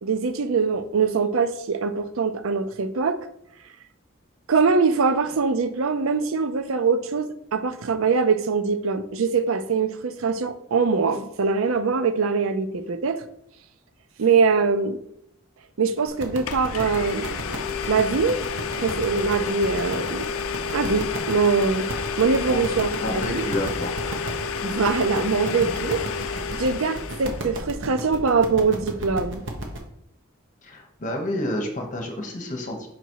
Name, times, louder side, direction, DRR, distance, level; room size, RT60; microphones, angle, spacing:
voice 1, 0.0-3.2 4.5-13.2 14.2-15.0 15.8-17.4 17.9-18.4 18.8-20.2 20.7-21.9 22.2-23.5 24.6-26.0 26.5-29.4, right 5 dB, 85° right, 11 dB, 0.5 m, -23 dB
Domestic sounds home sounds, 16.0-16.1 16.5-27.5, left 5 dB, 90° left, 0.5 m, -30 dB
sound 1, 16.1-29.8, right 1 dB, 65° right, 1.0 m, -34 dB
voice 2, 22.5-23.9 30.6-32.9, left 1 dB, 35° left, 2 dB, 1.1 m, -30 dB
6.0 x 4.0 x 4.6 m, 0.75 s
head